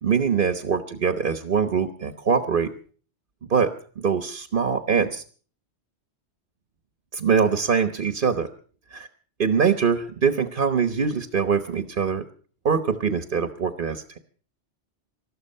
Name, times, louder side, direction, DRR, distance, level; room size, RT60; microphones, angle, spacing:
voice 1, 0.0-2.7 3.4-5.2 7.1-8.5 8.9-9.1 9.4-12.2 12.6-14.2, right 6 dB, 50° right, 9 dB, 1.2 m, -23 dB
20.0 x 13.0 x 5.5 m, 0.43 s
omnidirectional pair, 1.2 m